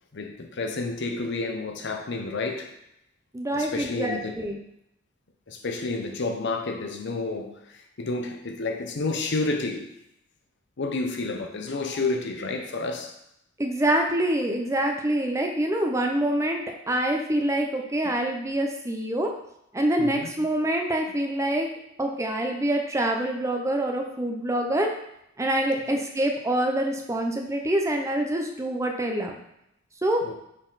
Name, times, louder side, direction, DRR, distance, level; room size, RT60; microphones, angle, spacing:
voice 1, 0.1-2.7 3.5-4.4 5.5-10.0 10.8-13.2 20.0-20.3 25.9-26.0 30.2-30.3, left 3 dB, 60° left, 0.7 m, -30 dB
voice 2, 3.3-4.6 13.6-19.3 19.7-21.7 22.0-24.9 25.4-29.3 30.0-30.3, right 1 dB, 15° right, 0.6 m, -26 dB
6.3 x 4.0 x 4.0 m
head